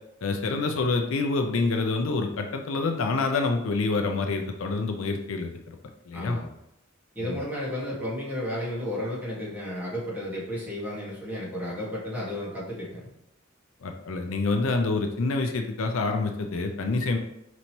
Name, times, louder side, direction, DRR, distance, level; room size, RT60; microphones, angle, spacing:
voice 1, 0.2-5.8 6.1-6.4 7.2-7.4 13.8-17.2, left 3 dB, 70° left, 4 dB, 0.5 m, -27 dB
voice 2, 6.1-6.5 7.1-13.1, left 1 dB, 10° right, -7 dB, 1.4 m, -33 dB
5.2 x 3.0 x 2.9 m, 0.84 s
head